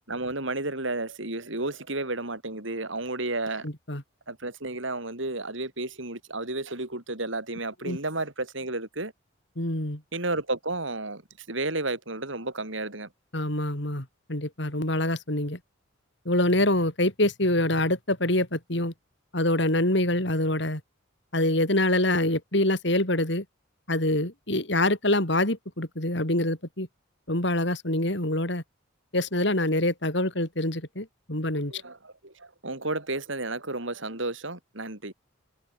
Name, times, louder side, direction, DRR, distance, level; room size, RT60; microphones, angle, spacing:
voice 1, 0.1-3.7 4.3-9.1 10.1-13.1 31.7-35.1, right 2 dB, 70° right, 5.4 m, -32 dB
voice 2, 3.6-4.0 7.8-8.0 9.6-10.0 13.3-15.6 16.3-18.9 19.3-20.8 21.3-23.4 23.9-26.9 27.3-28.6 29.1-31.8, left 1 dB, 60° left, 4.1 m, -25 dB
head